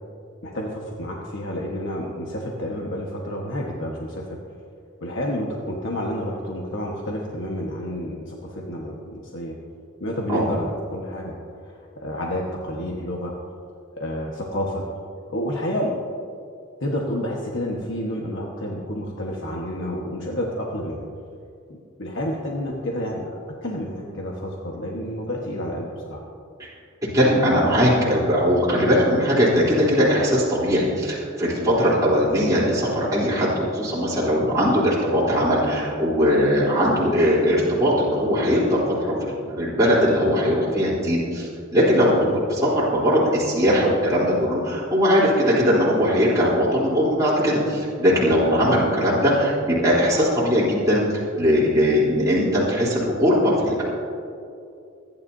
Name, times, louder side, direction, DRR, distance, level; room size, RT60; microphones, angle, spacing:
voice 1, 0.4-4.2 5.0-9.5 10.0-11.4 12.0-13.3 14.0-14.8 15.3-15.9 16.8-21.0 22.0-26.2 48.6-48.7, equal, 65° left, -2 dB, 1.4 m, -29 dB
voice 2, 27.1-53.8, equal, 15° right, -9 dB, 3.5 m, -20 dB
26.0 x 10.5 x 2.7 m, 2.5 s
head